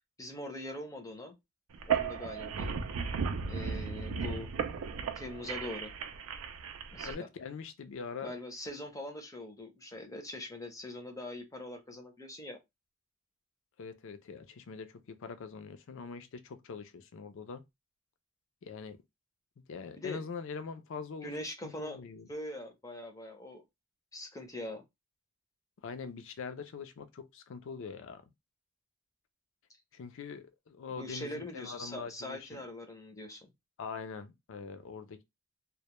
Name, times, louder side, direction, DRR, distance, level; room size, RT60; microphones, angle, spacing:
voice 1, 0.2-1.3 1.9-2.9 3.4-4.5 4.8-5.9 6.9-7.3 8.2-12.6 20.0-20.2 21.2-22.0 22.3-23.6 24.1-24.8 30.9-33.5, left 1 dB, 15° left, 0.5 m, -42 dB
sound 1, 1.7-7.1, right 6 dB, 85° right, 0.4 m, -35 dB
voice 2, 7.0-8.3 13.8-17.7 18.6-19.0 19.6-21.3 21.6-22.3 25.8-28.3 29.9-32.6 33.8-35.2, left 5 dB, 65° left, 0.4 m, -43 dB
2.1 x 2.1 x 2.9 m
head